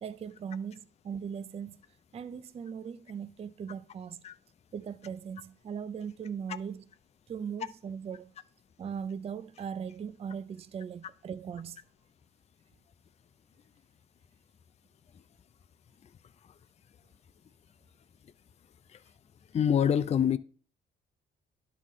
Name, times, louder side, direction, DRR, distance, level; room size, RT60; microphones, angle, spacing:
voice 1, 0.0-1.8 2.1-4.2 4.7-6.9 7.3-8.3 8.8-11.8, right 7 dB, 30° right, 0.4 m, -39 dB
voice 2, 19.5-20.4, left 8 dB, 35° left, 0.4 m, -25 dB
11.0 x 4.2 x 3.6 m
cardioid pair, 90°, 20 cm